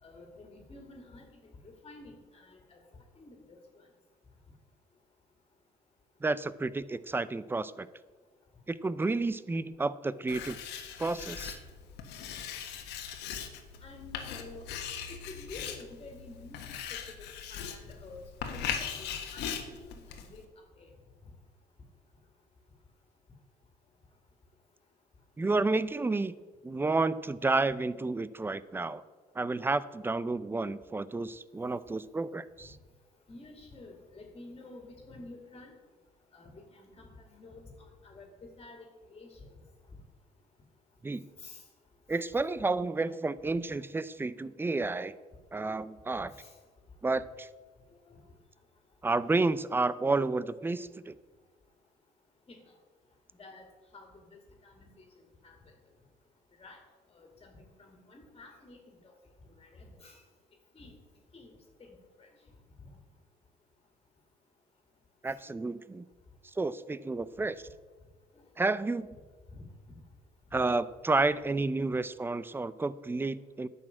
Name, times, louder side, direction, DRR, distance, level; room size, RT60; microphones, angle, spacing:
voice 1, 0.0-3.6 13.8-14.7 15.1-16.6 16.9-17.0 17.5-18.6 19.0-20.4 20.8-20.9 33.3-35.7 36.3-37.6 38.0-39.4 41.4-41.6 46.4-46.5 48.1-48.2 52.5-52.6 53.4-53.7 53.9-54.9 55.4-55.5 56.6-56.8 57.1-58.8 59.0-59.1 59.6-60.2 60.7-60.9 61.3-61.5 61.8-62.3 65.2-65.4 70.5-70.6, left 2 dB, 25° left, 2 dB, 2.4 m, -50 dB
voice 2, 6.2-7.9 8.7-10.6 11.0-11.6 25.4-26.4 26.6-29.0 29.4-32.8 41.0-41.3 42.1-45.1 45.5-46.3 47.0-47.5 49.0-51.2 65.2-66.1 66.6-67.6 68.6-69.2 70.5-73.7, right 3 dB, 15° right, 17 dB, 0.5 m, -31 dB
Writing, 10.3-20.4, left 8 dB, 90° left, 1.5 m, -40 dB
10.5 x 6.2 x 8.7 m, 1.4 s
cardioid pair, 110°, 17 cm